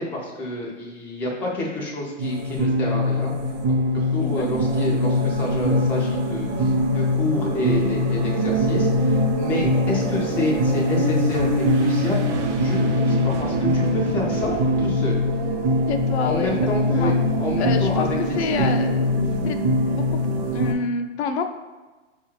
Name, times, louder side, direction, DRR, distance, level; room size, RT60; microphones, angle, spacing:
voice 1, 0.0-3.3 3.9-12.2 12.6-15.2 16.2-18.7 19.3-19.4, left 2 dB, 5° left, -4 dB, 0.3 m, -28 dB
sound 1, 2.2-20.7, left 1 dB, 35° right, 0.7 m, -22 dB
voice 2, 4.2-4.7 15.9-17.1 17.6-18.1 18.4-19.0 19.4-19.6 20.5-21.4, left 5 dB, 60° left, 7 dB, 0.5 m, -27 dB
sound 2, 11.3-15.6, right 4 dB, 70° right, 0.6 m, -37 dB
5.4 x 2.4 x 3.0 m, 1.2 s
hypercardioid pair, 105°, 36 cm